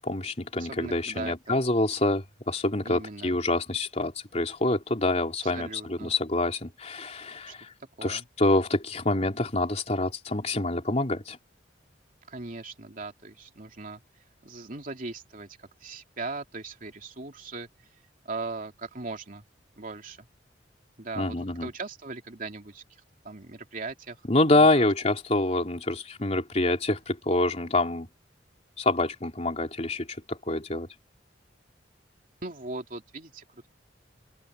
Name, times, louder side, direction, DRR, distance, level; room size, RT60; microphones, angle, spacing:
voice 1, 0.0-7.7 8.0-11.4 21.2-21.7 24.3-28.1 28.8-30.9, left 2 dB, 35° left, 3.6 m, -26 dB
voice 2, 0.6-1.6 2.8-3.4 5.4-6.1 7.5-7.6 8.0-8.2 12.3-14.0 14.4-17.7 18.2-19.4 19.8-20.3 21.0-22.8 23.2-24.2 24.5-24.8 32.4-33.7, right 3 dB, 50° right, 3.0 m, -39 dB
open air
head